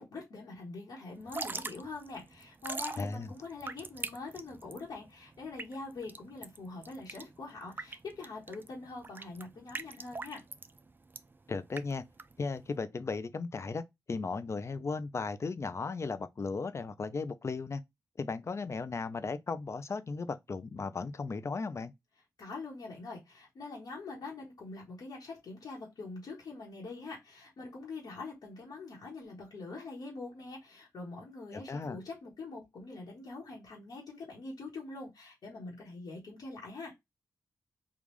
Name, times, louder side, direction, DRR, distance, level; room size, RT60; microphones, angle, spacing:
voice 1, 0.0-10.4 22.4-36.9, left 3 dB, 75° left, 1.4 m, -44 dB
Drip / Trickle dribble, 1.2-12.8, right 3 dB, 30° right, 0.4 m, -43 dB
voice 2, 3.0-3.3 11.5-12.0 12.4-13.8 14.1-17.8 18.2-21.9 31.5-32.0, left 4 dB, 45° left, 0.5 m, -36 dB
3.6 x 2.4 x 3.1 m
cardioid pair, 70°, 7 cm